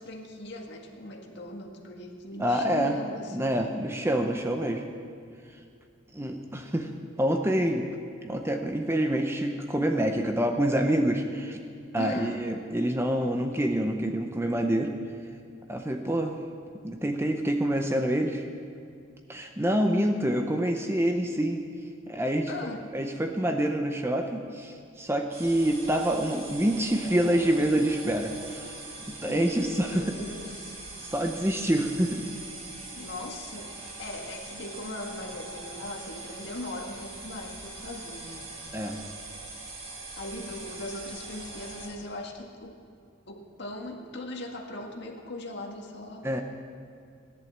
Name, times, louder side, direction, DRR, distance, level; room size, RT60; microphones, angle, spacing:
voice 1, 0.0-3.5 12.0-12.4 22.5-22.8 29.3-30.8 32.9-38.5 38.9-39.0 40.2-42.8 43.3-46.4, left 1 dB, 55° left, 1 dB, 1.8 m, -39 dB
voice 2, 2.4-3.0 3.3-4.8 6.1-6.9 7.2-7.9 8.2-11.6 11.9-14.9 15.7-16.4 16.8-18.4 19.3-21.6 22.1-22.5 22.9-28.7 29.1-30.2 31.0-32.2 38.7-39.0 46.2-46.4, right 1 dB, 10° right, 4 dB, 0.7 m, -27 dB
sound 1, 25.3-41.9, right 2 dB, 80° right, 5.1 m, -42 dB
17.0 x 11.0 x 7.4 m, 2.4 s
head